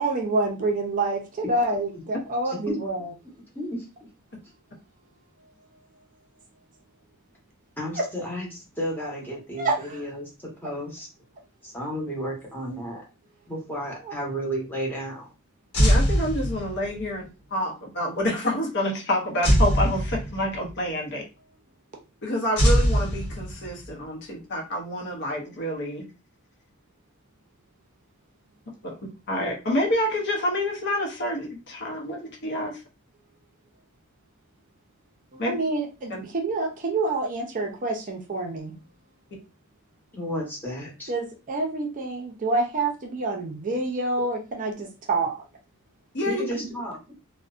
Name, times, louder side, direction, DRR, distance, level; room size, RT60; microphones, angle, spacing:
voice 1, 0.0-3.1 9.6-10.0 14.0-14.1 28.8-29.0 35.3-38.8 41.1-45.4, right 2 dB, 40° right, 0.5 m, -27 dB
voice 2, 2.4-2.8 3.5-3.8 7.8-8.5 8.8-11.1 11.6-13.0 13.5-15.3 40.1-41.1 46.2-47.0, equal, 10° left, 0.9 m, -32 dB
sound 1, 15.7-17.0 19.4-20.7 22.6-23.9, equal, 90° left, 0.9 m, -22 dB
voice 3, 15.8-21.2 22.2-26.0 29.3-32.8 35.4-35.5 36.1-36.2 46.1-46.4, left 1 dB, 55° left, 0.7 m, -28 dB
2.5 x 2.1 x 2.3 m
head